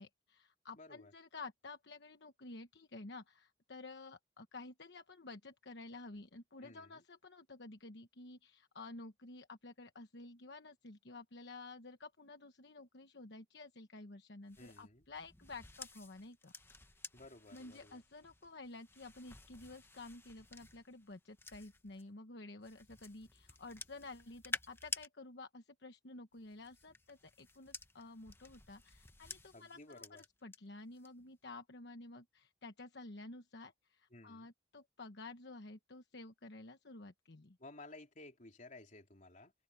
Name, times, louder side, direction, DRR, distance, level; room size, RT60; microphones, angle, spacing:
voice 1, 0.0-16.6 17.5-37.6, left 2 dB, 70° left, 1.2 m, -52 dB
voice 2, 0.8-1.1 6.6-7.0 14.6-15.1 17.1-18.0 29.5-30.2 34.1-34.5 37.6-39.5, left 2 dB, 45° left, 3.8 m, -55 dB
sound 1, 14.5-22.0 22.6-25.1 26.3-30.6 30.9-31.3, left 3 dB, 15° left, 1.1 m, -51 dB
open air
head